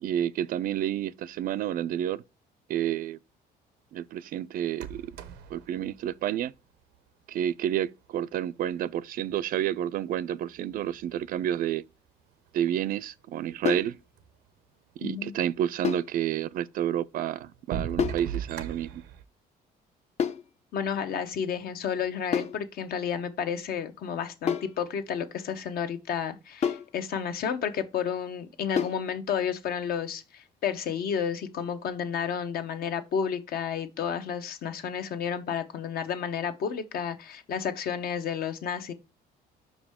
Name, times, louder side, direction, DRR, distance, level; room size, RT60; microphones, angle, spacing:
voice 1, 0.0-2.2 2.7-3.2 3.9-5.1 5.5-6.5 7.3-11.8 12.5-14.0 15.0-19.0, right 10 dB, 55° right, 0.4 m, -30 dB
sound 1, 4.7-7.0 8.1-8.2 8.8-9.9 10.6-11.4 12.2-12.3 12.5-12.6 13.2-13.3 13.5-14.3 15.9-16.0 16.7-16.8 17.4-19.2, right 8 dB, 90° right, 0.8 m, -38 dB
sound 2, 13.6-14.0 15.8-16.1 18.0-18.3 20.2-20.5 22.3-22.6 24.5-24.8 26.6-26.9 28.8-29.1, left 7 dB, 40° left, 0.6 m, -28 dB
voice 2, 15.0-15.3 20.7-38.9, left 7 dB, 60° left, 0.9 m, -31 dB
5.4 x 4.9 x 3.5 m
cardioid pair, 110°, 17 cm